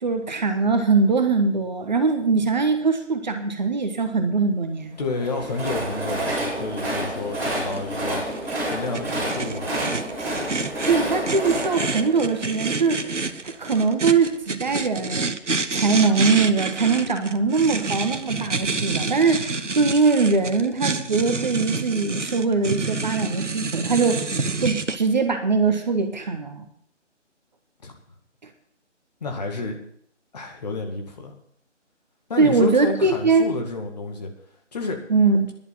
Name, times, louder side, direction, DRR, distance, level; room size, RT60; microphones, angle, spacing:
voice 1, 0.0-5.0 10.9-13.0 13.4-15.3 15.7-26.6 32.4-33.5 35.1-35.5, right 4 dB, 35° right, 6 dB, 1.3 m, -21 dB
voice 2, 5.0-8.2 8.7-9.8 27.8-27.9 29.2-29.8 30.3-31.3 32.3-34.3 34.7-35.0, left 3 dB, 35° left, 2 dB, 2.1 m, -30 dB
Train, 5.0-13.2, right 1 dB, 5° right, 3.6 m, -29 dB
sound 1, 7.7-25.0, right 3 dB, 75° right, 1.1 m, -29 dB
11.0 x 7.1 x 8.9 m, 0.66 s
figure-of-eight pair, 150°, 37 cm